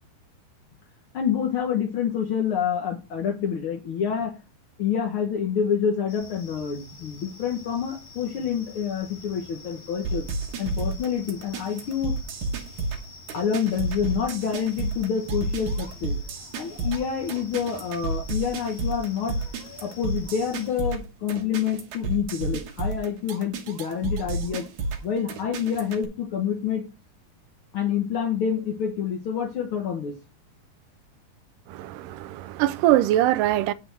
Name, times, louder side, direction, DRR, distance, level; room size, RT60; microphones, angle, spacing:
voice 1, 1.1-4.4 4.8-10.2 10.6-12.1 13.3-16.2 16.6-24.7 25.0-26.8 27.7-30.1, left 8 dB, 75° left, 1.2 m, -27 dB
sound 1, 6.1-20.7, left 3 dB, 50° left, 0.7 m, -47 dB
sound 2, 10.0-26.0, right 3 dB, 65° right, 2.5 m, -31 dB
voice 2, 31.7-33.7, right 14 dB, 80° right, 2.1 m, -22 dB
9.5 x 3.4 x 6.4 m
omnidirectional pair, 3.9 m